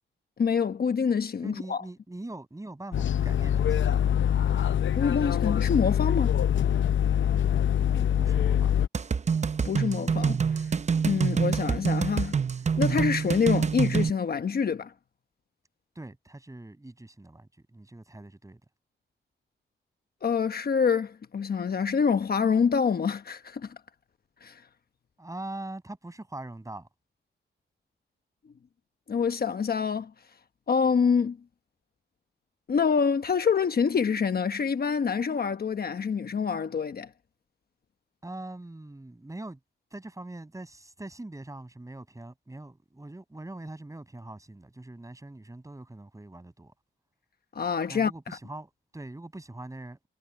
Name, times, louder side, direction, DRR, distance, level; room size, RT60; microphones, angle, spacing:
voice 1, 0.4-1.8 5.0-6.4 9.6-10.4 11.0-12.4 12.8-14.9 20.2-23.7 24.4-24.6 29.1-30.1 30.7-31.4 32.7-37.1 47.5-48.4, left 6 dB, 50° left, 1.1 m, -26 dB
voice 2, 1.4-4.0 7.9-8.7 15.9-18.6 25.2-26.9 38.2-39.6 39.9-46.7 47.9-50.1, right 2 dB, 15° right, 6.2 m, -42 dB
sound 1, 2.9-8.9, left 10 dB, 75° left, 0.7 m, -24 dB
sound 2, 8.9-14.1, right 6 dB, 35° right, 0.7 m, -26 dB
cardioid pair, 85°, 20 cm